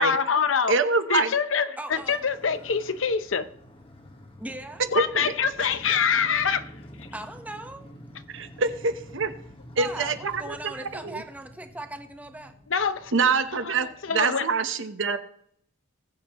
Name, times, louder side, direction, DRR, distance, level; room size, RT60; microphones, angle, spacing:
voice 1, 0.0-0.7 1.1-3.5 4.9-6.7 12.7-13.1 13.6-14.5, left 6 dB, 70° left, 12 dB, 0.8 m, -25 dB
voice 2, 0.7-1.3 4.9-5.3 5.6-6.0 8.3-9.3 9.8-10.7 11.0-11.2 13.1-15.2, right 4 dB, 70° right, 9 dB, 1.0 m, -25 dB
voice 3, 1.8-2.2 4.4-4.8 7.1-7.9 9.8-12.5, right 1 dB, 10° right, 6 dB, 1.1 m, -38 dB
Motorcycle, 1.9-14.1, equal, 30° left, 1.4 m, -48 dB
19.5 x 7.9 x 3.0 m, 0.69 s
head